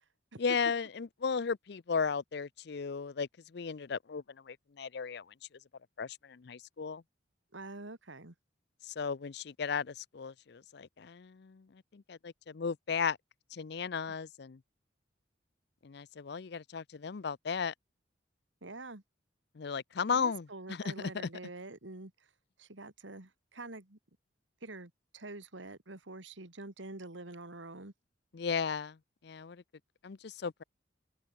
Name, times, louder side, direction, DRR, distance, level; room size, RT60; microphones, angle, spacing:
voice 1, 0.4-5.3 6.0-7.0 8.8-13.2 13.5-14.6 15.8-17.7 19.5-20.9 28.3-29.0 29.2-29.6 30.0-30.6, left 5 dB, 60° left, 0.5 m, -35 dB
voice 2, 7.5-8.3 18.6-19.0 20.1-22.3 22.6-24.0 24.6-27.9, right 2 dB, 80° right, 2.5 m, -46 dB
open air
head